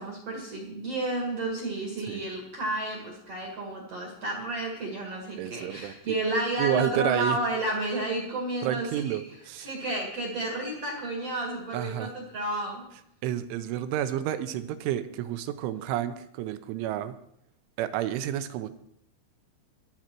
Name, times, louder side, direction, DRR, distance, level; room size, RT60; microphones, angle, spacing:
voice 1, 0.0-9.2 9.6-12.9, right 2 dB, 55° right, 1 dB, 1.8 m, -31 dB
voice 2, 5.4-6.2 6.6-7.4 8.6-9.7 11.7-12.1 13.2-17.2 17.8-18.7, right 11 dB, 80° right, 11 dB, 3.2 m, -30 dB
22.5 x 7.9 x 4.5 m, 0.76 s
omnidirectional pair, 5.6 m